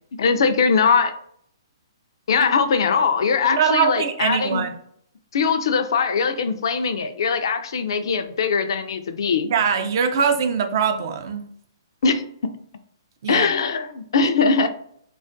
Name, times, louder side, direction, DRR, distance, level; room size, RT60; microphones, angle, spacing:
voice 1, 0.2-1.1 2.3-4.6 5.3-9.5 12.0-12.2 13.3-14.7, left 5 dB, 65° left, 8 dB, 0.3 m, -21 dB
voice 2, 3.5-4.7 9.4-11.4 13.2-13.5, right 6 dB, 50° right, 6 dB, 0.4 m, -22 dB
2.3 x 2.2 x 2.5 m, 0.65 s
hypercardioid pair, 150°, 3 cm